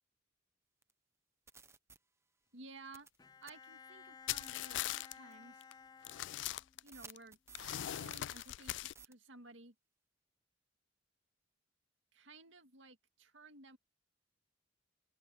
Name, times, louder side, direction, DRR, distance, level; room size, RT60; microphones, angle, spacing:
sound 1, 0.8-0.9 1.5-2.0 2.9-3.2 3.4-3.5 4.4-4.6 5.3-5.4 6.9-8.7 8.9-9.1, right 5 dB, 15° right, 0.8 m, -55 dB
voice 1, 2.5-3.1 3.4-5.7 6.8-7.4 7.9-9.8 12.1-13.8, right 3 dB, 85° right, 2.2 m, -56 dB
Bowed string instrument, 3.2-6.9, left 6 dB, 20° left, 0.7 m, -56 dB
sound 2, 4.3-5.1 5.6-5.7 6.0-7.2 7.5-8.9, left 14 dB, 70° left, 0.3 m, -40 dB
open air
head